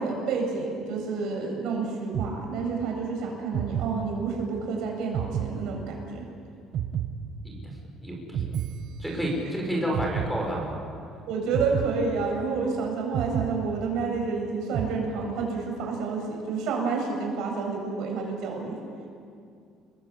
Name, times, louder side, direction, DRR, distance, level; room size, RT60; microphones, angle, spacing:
voice 1, 0.0-6.3 11.3-18.8, right 4 dB, 70° right, 1 dB, 7.7 m, -29 dB
sound 1, 2.1-3.0 3.5-4.6 5.1-6.3 6.7-7.9 8.3-9.5 9.9-11.0 11.5-12.7 13.1-14.3 14.7-15.6, right 8 dB, 50° right, 1.1 m, -32 dB
voice 2, 7.4-8.6 9.0-10.8, equal, ahead, -3 dB, 6.8 m, -30 dB
29.5 x 22.0 x 8.6 m, 2.4 s
cardioid pair, 140°, 0 cm